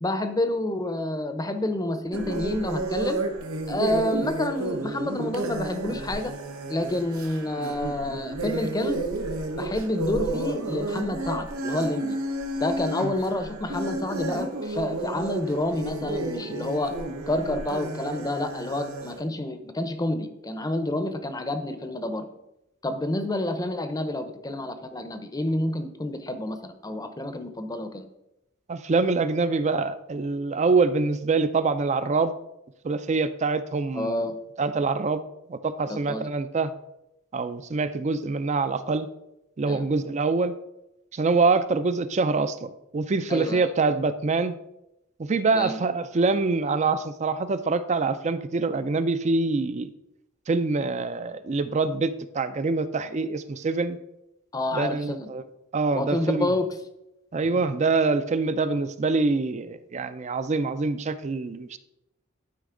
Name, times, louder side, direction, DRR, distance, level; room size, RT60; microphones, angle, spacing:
voice 1, 0.0-3.2 3.7-6.3 6.7-9.1 9.6-12.2 12.5-16.9 17.3-22.3 22.8-28.1 33.9-34.4 35.9-36.2 39.7-39.8 43.3-43.7 45.5-45.8 54.5-55.3 55.9-56.7, left 1 dB, 15° left, 9 dB, 0.7 m, -28 dB
sound 1, 2.1-19.2, right 2 dB, 90° right, 1.1 m, -32 dB
voice 2, 28.7-32.3 32.8-34.3 34.6-35.2 35.5-36.7 37.3-39.1 39.6-40.5 41.1-44.5 45.2-49.9 50.5-54.0 54.7-55.5 55.7-56.5 57.3-61.8, right 3 dB, 35° right, 12 dB, 0.4 m, -25 dB
11.5 x 5.1 x 3.8 m, 0.88 s
head